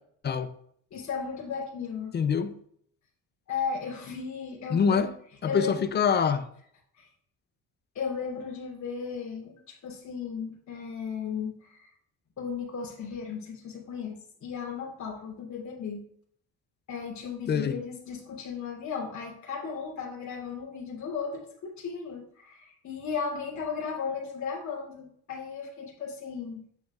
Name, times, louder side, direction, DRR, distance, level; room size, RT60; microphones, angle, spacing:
voice 1, 0.9-2.2 3.5-5.1 5.5-5.8 7.0-7.1 7.9-11.9 12.4-16.1 16.9-26.6, left 6 dB, 45° left, 2.9 m, -35 dB
voice 2, 2.1-2.5 4.7-5.1 5.4-6.4 17.5-17.8, left 6 dB, 30° left, 0.4 m, -25 dB
9.0 x 7.6 x 2.4 m
cardioid pair, 165°, 39 cm